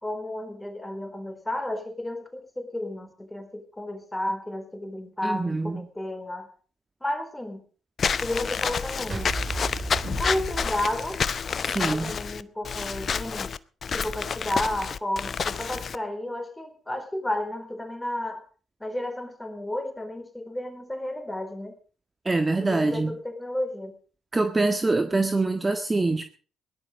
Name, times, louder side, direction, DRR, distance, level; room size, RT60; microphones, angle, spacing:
voice 1, 0.0-6.5 7.0-7.6 8.2-9.4 10.2-11.2 11.7-13.5 13.9-18.4 18.8-21.8 22.6-23.9, left 1 dB, 10° left, 8 dB, 4.0 m, -32 dB
voice 2, 5.2-5.8 11.6-12.1 22.2-23.1 24.3-26.2, right 3 dB, 25° right, 7 dB, 1.7 m, -24 dB
Walk footsteps / Squeak, 8.0-16.0, left 6 dB, 50° left, 0.7 m, -29 dB
sound 1, 9.1-11.4, right 4 dB, 40° right, 4.5 m, -34 dB
18.0 x 11.5 x 5.1 m, 0.40 s
hypercardioid pair, 50°, 0 cm